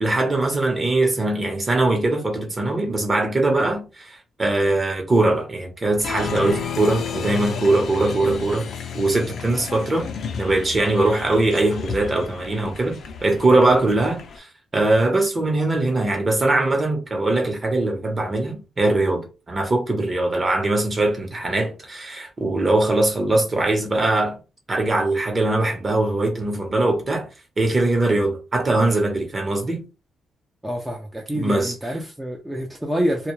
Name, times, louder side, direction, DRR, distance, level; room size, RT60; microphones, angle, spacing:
voice 1, 0.0-8.7 8.9-10.1 10.4-14.5 14.7-24.4 24.7-27.3 27.6-29.8 31.3-31.7, right 2 dB, 30° right, 0.9 m, -21 dB
Applause, 6.0-14.4, left 6 dB, 60° left, 0.5 m, -32 dB
voice 2, 30.6-33.3, equal, 10° right, 0.5 m, -27 dB
2.2 x 2.0 x 3.0 m
cardioid pair, 90°, 0 cm